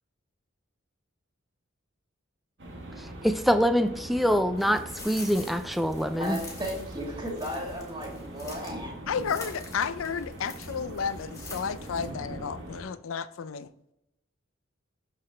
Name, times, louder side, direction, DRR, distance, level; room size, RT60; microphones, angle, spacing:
sound 1, 2.6-12.8, right 1 dB, 60° right, 1.3 m, -42 dB
voice 1, 3.0-6.4, equal, ahead, 0.3 m, -25 dB
sound 2, 4.6-8.8 9.1-12.1, left 2 dB, 15° left, 1.7 m, -46 dB
voice 2, 6.1-8.9, equal, 20° right, 1.7 m, -35 dB
voice 3, 9.1-13.7, left 6 dB, 85° left, 0.4 m, -32 dB
11.5 x 4.1 x 3.2 m
head